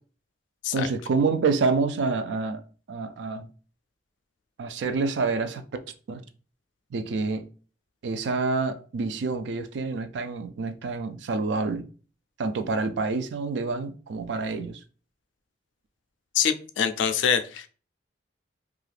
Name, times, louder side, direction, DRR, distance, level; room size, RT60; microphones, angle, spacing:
voice 1, 0.7-2.6 2.9-3.5 4.6-5.6 6.1-6.2 6.9-7.5 8.0-11.8 12.4-14.8, right 4 dB, 65° right, 0.3 m, -27 dB
voice 2, 16.3-17.7, left 8 dB, 70° left, 0.3 m, -24 dB
2.4 x 2.4 x 3.3 m
head